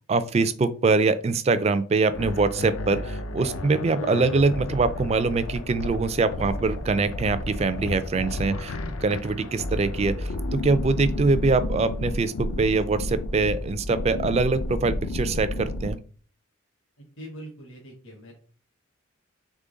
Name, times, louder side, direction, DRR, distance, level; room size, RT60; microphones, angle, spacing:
voice 1, 0.1-8.7 9.0-16.0, right 3 dB, 30° right, 12 dB, 0.3 m, -23 dB
sound 1, 2.1-15.9, left 1 dB, 85° left, 0.5 m, -32 dB
voice 2, 17.0-18.4, right 1 dB, 65° left, -1 dB, 1.2 m, -43 dB
3.7 x 3.5 x 3.8 m, 0.41 s
head